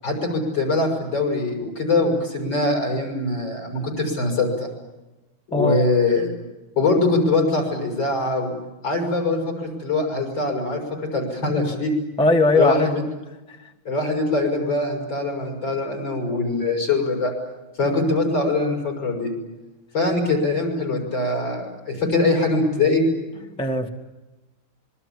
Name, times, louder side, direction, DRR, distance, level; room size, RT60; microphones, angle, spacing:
voice 1, 0.0-4.7 5.5-6.3 6.8-8.5 8.8-12.0 12.6-13.0 13.9-17.3 17.8-19.3 19.9-23.1, left 2 dB, 65° left, 2 dB, 7.1 m, -22 dB
voice 2, 5.5-5.8 12.2-13.1 13.5-13.7 23.6-23.9, left 2 dB, 5° left, 4 dB, 1.2 m, -20 dB
26.0 x 23.5 x 8.6 m, 1.1 s
omnidirectional pair, 2.2 m